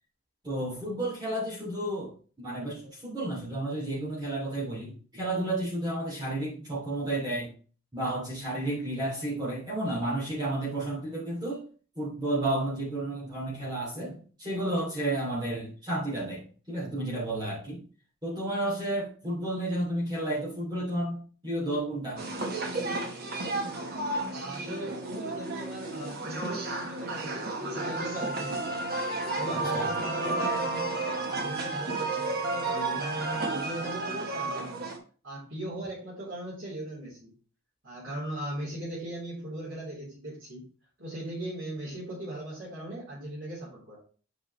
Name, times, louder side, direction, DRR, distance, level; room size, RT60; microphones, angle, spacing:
voice 1, 0.4-2.1 2.4-7.5 7.9-11.6 12.0-17.8 18.2-22.2 29.5-29.9, right 1 dB, 20° right, -6 dB, 2.6 m, -32 dB
sound 1, 22.2-35.0, right 2 dB, 45° right, 1.1 m, -32 dB
voice 2, 24.3-28.8 29.2-31.0 31.2-34.9 35.2-37.3 37.8-40.6 41.0-44.0, right 1 dB, 60° right, -7 dB, 3.3 m, -39 dB
8.3 x 4.9 x 3.1 m, 0.39 s
head